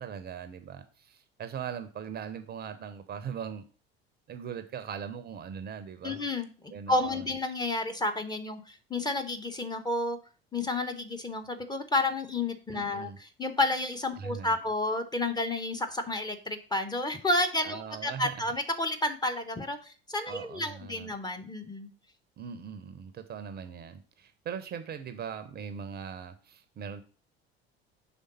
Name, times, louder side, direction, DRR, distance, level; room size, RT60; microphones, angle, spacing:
voice 1, 0.0-3.7 4.3-6.2 6.7-7.3 12.7-13.2 14.1-14.6 17.6-18.4 20.3-21.1 22.4-27.0, right 7 dB, 30° right, 10 dB, 0.6 m, -40 dB
voice 2, 6.0-10.2 10.5-13.1 13.4-21.9, left 2 dB, 15° left, 6 dB, 0.7 m, -31 dB
5.1 x 3.5 x 5.4 m, 0.37 s
figure-of-eight pair, 60°, 31 cm